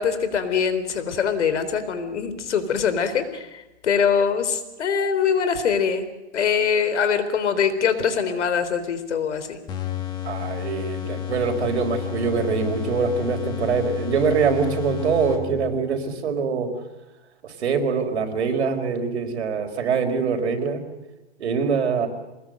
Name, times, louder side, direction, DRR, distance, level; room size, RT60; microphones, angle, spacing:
voice 1, 0.0-6.1 6.3-9.6, left 6 dB, 80° left, 11 dB, 3.8 m, -23 dB
sound 1, 9.7-15.8, left 10 dB, 10° left, 1.6 m, -31 dB
voice 2, 10.2-16.7 17.4-20.8 21.4-22.1, right 5 dB, 70° right, 6 dB, 4.6 m, -24 dB
24.5 x 20.5 x 7.8 m, 1.0 s
hypercardioid pair, 180°, 35 cm